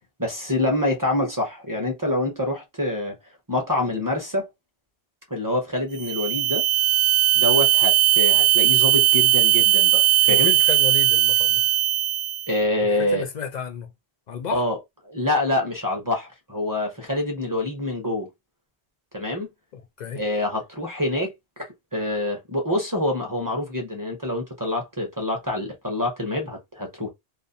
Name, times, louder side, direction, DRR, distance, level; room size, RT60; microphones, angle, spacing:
voice 1, 0.2-3.1 3.5-4.5 5.3-6.7 7.3-10.5 12.5-13.2 14.5-14.8 15.0-18.3 19.1-19.5 20.1-21.3 21.9-27.1, left 1 dB, 25° right, 0.5 m, -26 dB
sound 1, 5.9-12.5, right 13 dB, 60° right, 0.8 m, -19 dB
voice 2, 10.3-11.6 13.1-13.9 14.3-14.6 19.7-20.2, left 7 dB, 55° left, 0.5 m, -32 dB
2.4 x 2.3 x 2.6 m
omnidirectional pair, 1.1 m